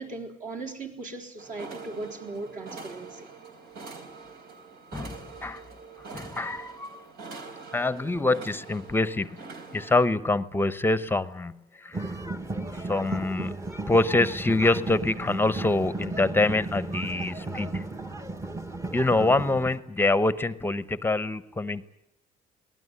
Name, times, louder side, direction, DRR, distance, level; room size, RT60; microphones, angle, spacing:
voice 1, 0.0-3.3, right 3 dB, 50° right, 3 dB, 4.2 m, -38 dB
sound 1, 1.4-10.1, right 4 dB, 70° right, 4.0 m, -44 dB
voice 2, 4.9-5.6 6.1-7.1 7.7-9.3 9.7-11.5 11.8-12.1 12.8-13.5 13.9-17.8 18.9-21.9, left 2 dB, 10° left, 15 dB, 0.9 m, -25 dB
sound 2, 11.9-19.8, right 2 dB, 15° right, 1.3 m, -34 dB
22.0 x 19.5 x 9.8 m, 0.81 s
cardioid pair, 110°, 17 cm